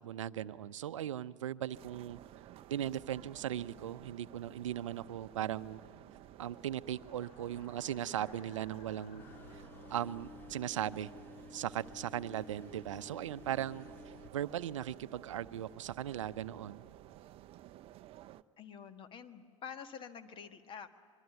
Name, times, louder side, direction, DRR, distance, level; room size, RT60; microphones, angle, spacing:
voice 1, 0.0-2.2 2.7-5.8 6.4-9.3 9.5-9.6 9.9-11.1 11.5-13.9 14.3-16.8, right 11 dB, 70° right, 15 dB, 0.7 m, -38 dB
sound 1, 1.7-18.4, right 13 dB, 35° right, 0.6 m, -54 dB
sound 2, 3.9-12.6, left 5 dB, 50° left, 3.1 m, -64 dB
sound 3, 9.2-14.3, left 3 dB, 10° left, 1.9 m, -53 dB
voice 2, 18.6-20.9, left 7 dB, 30° left, 9 dB, 1.6 m, -48 dB
24.5 x 23.0 x 9.3 m, 2.1 s
figure-of-eight pair, 90°, 17 cm